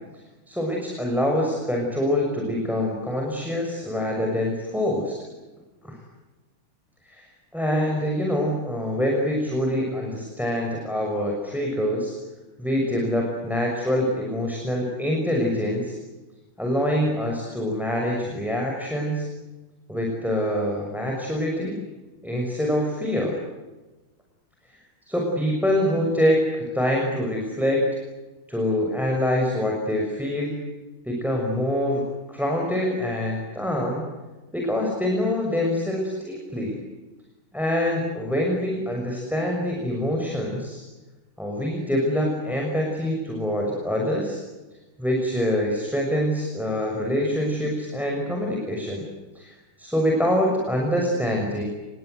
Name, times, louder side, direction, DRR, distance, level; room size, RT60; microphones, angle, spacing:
voice 1, 0.5-5.1 5.8-6.0 7.0-7.3 7.5-12.1 12.6-15.9 16.6-19.2 19.9-21.8 22.2-23.4 25.1-27.8 28.5-30.6 31.0-32.0 32.3-34.0 34.5-36.8 37.5-40.8 41.4-44.4 45.0-49.0 49.3-51.6, equal, ahead, 0 dB, 6.1 m, -25 dB
29.0 x 23.0 x 8.1 m, 1.2 s
omnidirectional pair, 2.4 m